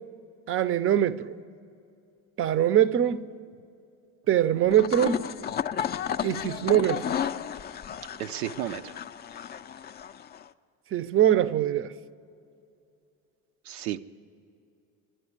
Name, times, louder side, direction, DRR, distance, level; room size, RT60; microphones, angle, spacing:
voice 1, 0.5-1.4 2.4-3.3 4.3-5.3 6.2-7.1 10.9-11.9, right 10 dB, 30° right, 0.5 m, -23 dB
sound 1, 4.7-10.5, left 9 dB, 25° left, 0.3 m, -33 dB
voice 2, 8.2-9.0 13.6-14.0, right 12 dB, 85° right, 0.6 m, -33 dB
11.0 x 11.0 x 9.5 m
hypercardioid pair, 80°, 43 cm